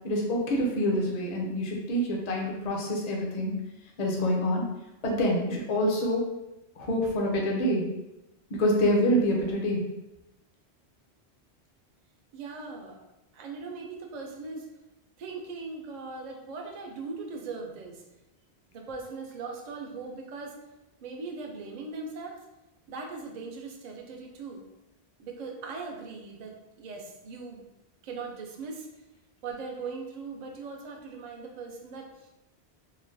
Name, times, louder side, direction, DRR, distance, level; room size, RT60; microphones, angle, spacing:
voice 1, 0.0-3.5 4.0-4.6 5.0-6.3 6.8-7.8 8.5-9.8, equal, 45° left, -1 dB, 0.6 m, -26 dB
voice 2, 12.3-13.0 13.3-14.7 15.2-18.0 18.7-20.6 21.0-22.4 22.9-24.6 25.2-27.6 28.0-28.9 29.4-32.3, right 4 dB, 55° right, 1 dB, 0.5 m, -39 dB
3.1 x 2.2 x 2.5 m, 0.93 s
omnidirectional pair, 1.1 m